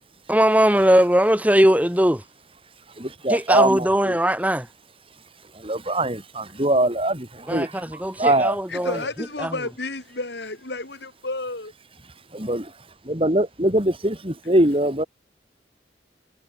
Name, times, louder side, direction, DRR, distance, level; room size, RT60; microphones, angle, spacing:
voice 1, 0.3-2.2 3.3-4.7 7.5-9.0 9.4-9.6, equal, 10° right, 2.5 m, -19 dB
voice 2, 3.0-4.2 5.5-9.0 12.3-12.6 13.1-15.0, right 1 dB, 30° right, 4.1 m, -23 dB
voice 3, 8.7-11.7, left 2 dB, 75° left, 4.6 m, -31 dB
head